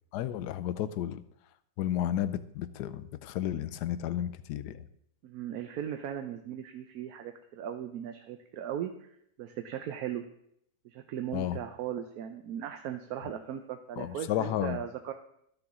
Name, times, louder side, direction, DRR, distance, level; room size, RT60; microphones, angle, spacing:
voice 1, 0.1-1.2 1.8-4.8 11.3-11.6 14.0-14.8, left 11 dB, 85° left, 14 dB, 1.2 m, -32 dB
voice 2, 5.2-9.1 9.4-10.2 10.8-15.1, right 9 dB, 70° right, 6 dB, 1.1 m, -38 dB
12.5 x 6.9 x 3.7 m, 0.71 s
omnidirectional pair, 1.7 m